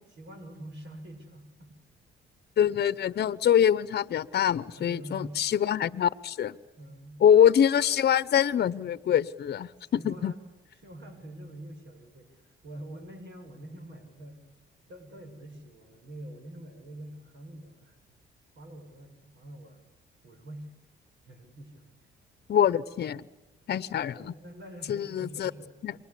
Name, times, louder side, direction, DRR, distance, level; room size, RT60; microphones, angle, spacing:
voice 1, 0.2-1.8 2.6-2.7 4.8-5.5 6.8-7.3 9.8-10.4 10.8-14.4 14.9-18.0 18.6-19.8 20.2-20.7 21.3-22.0 24.2-25.8, right 1 dB, 65° right, 5 dB, 7.1 m, -45 dB
voice 2, 2.6-6.6 7.2-10.3 22.5-23.2 23.7-24.3 24.9-25.5 25.8-25.9, left 9 dB, 55° left, 16 dB, 0.9 m, -24 dB
29.0 x 24.0 x 8.5 m, 1.0 s
cardioid pair, 90°, 20 cm